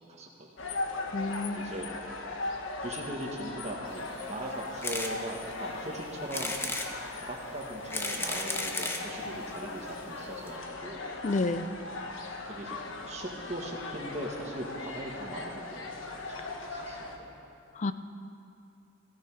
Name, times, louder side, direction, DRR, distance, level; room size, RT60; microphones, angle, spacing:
voice 1, 0.1-0.5 1.6-1.9 2.8-6.6 7.1-11.1 12.4-17.3, right 1 dB, 35° right, -2 dB, 1.6 m, -40 dB
sound 1, 0.6-17.2, left 3 dB, 80° left, 1.4 m, -39 dB
voice 2, 1.1-1.7 11.2-11.7 17.8-17.9, left 2 dB, 35° left, 12 dB, 0.5 m, -30 dB
sound 2, 4.8-5.1 5.6-5.7 6.3-6.9 7.7-9.1 9.9-10.0 10.2-10.3 10.5-10.6, left 2 dB, 10° left, 0.9 m, -33 dB
16.0 x 13.0 x 4.9 m, 2.5 s
head